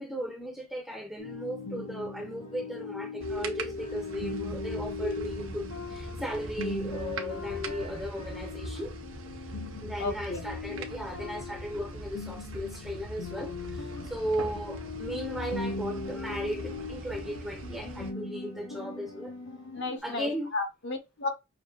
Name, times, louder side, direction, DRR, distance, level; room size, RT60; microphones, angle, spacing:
voice 1, 0.0-9.0 9.8-19.3 20.0-20.5, equal, ahead, 0.7 m, -36 dB
sound 1, 1.2-20.0, left 3 dB, 80° left, 1.4 m, -39 dB
sound 2, 3.2-18.1, right 2 dB, 65° right, 0.7 m, -42 dB
voice 2, 10.0-10.5 19.7-21.3, left 3 dB, 55° left, 1.0 m, -33 dB
5.9 x 2.7 x 2.4 m
head